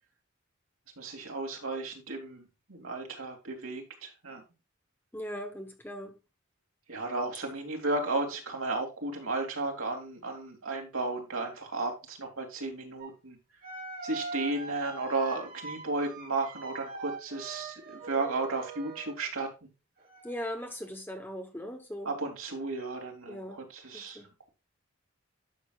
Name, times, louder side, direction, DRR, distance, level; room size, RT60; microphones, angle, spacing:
voice 1, 1.0-2.4 2.7-4.4 6.9-13.4 14.0-19.5 22.0-24.2, right 3 dB, 80° right, 2.8 m, -34 dB
voice 2, 5.1-6.2 20.2-22.1 23.3-23.6 23.9-24.3, equal, 10° left, 1.1 m, -39 dB
sound 1, 13.0-13.1 13.6-19.2 20.0-20.9, right 4 dB, 45° right, 2.8 m, -42 dB
11.5 x 6.5 x 2.4 m
head